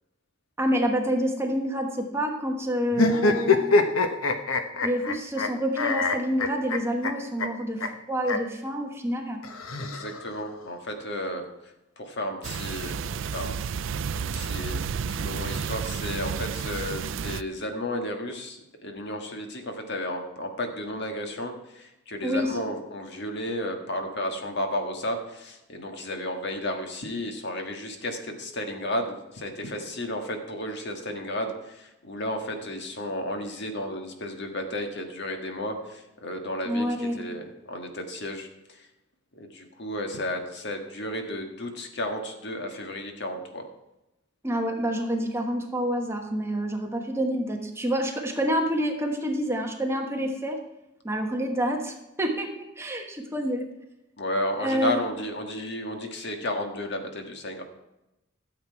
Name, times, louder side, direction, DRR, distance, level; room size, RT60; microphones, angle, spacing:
voice 1, 0.6-3.6 4.8-9.4 22.2-22.5 36.6-37.2 44.4-50.6 51.0-53.7 54.6-54.9, equal, 15° right, 2 dB, 1.2 m, -28 dB
sound 1, 2.9-5.5 5.8-7.1 7.4-7.5 7.8-7.9 8.2-8.4 9.4-10.4, left 3 dB, 90° left, 1.1 m, -24 dB
voice 2, 9.8-13.6 14.1-38.9 39.3-43.7 54.2-57.6, left 1 dB, 55° left, 5 dB, 1.6 m, -33 dB
sound 2, 12.4-17.4, right 6 dB, 65° right, 0.4 m, -31 dB
13.0 x 7.9 x 4.6 m, 0.94 s
head